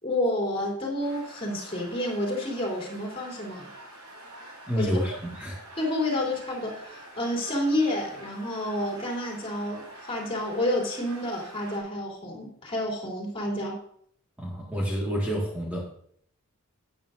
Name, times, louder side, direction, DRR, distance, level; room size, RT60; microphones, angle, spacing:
voice 1, 0.0-3.7 4.7-4.9 5.8-13.8, left 1 dB, 25° left, -2 dB, 3.4 m, -29 dB
sound 1, 1.0-11.8, right 1 dB, 90° right, 4.6 m, -46 dB
voice 2, 4.7-5.6 14.4-15.9, equal, 5° right, -3 dB, 1.6 m, -29 dB
12.0 x 9.5 x 2.5 m, 0.65 s
head